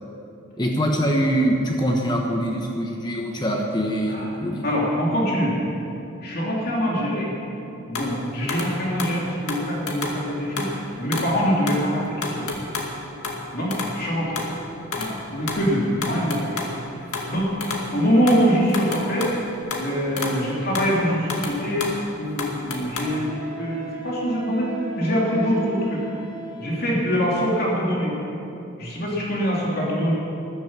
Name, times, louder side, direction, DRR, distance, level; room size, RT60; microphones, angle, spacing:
voice 1, 0.6-4.7, equal, 20° left, 1 dB, 1.0 m, -23 dB
voice 2, 4.6-5.6 6.2-7.3 7.8-10.7 11.0-12.5 13.5-14.4 15.0-16.6 16.9-17.5 17.9-19.3 19.8-21.9 22.2-23.3 23.6-26.1 26.6-28.2 28.8-30.1, equal, 45° left, -4 dB, 2.9 m, -24 dB
sound 1, 7.9-8.2 8.5-8.7 9.0-9.2 9.5-10.2 10.6-10.8 11.1-11.3 11.7-11.9 12.2-12.9 13.2-13.4 13.7-14.0 14.4-14.6 14.9-15.2 15.5-16.8 17.1-17.9 18.3-19.9 20.2-20.4 20.7-21.0 21.3-22.0 22.4-23.0, left 3 dB, 85° left, 2.2 m, -30 dB
Wind instrument woodwind instrument, 23.0-27.1, right 2 dB, 5° right, 3.6 m, -36 dB
13.5 x 11.5 x 7.4 m, 2.9 s
head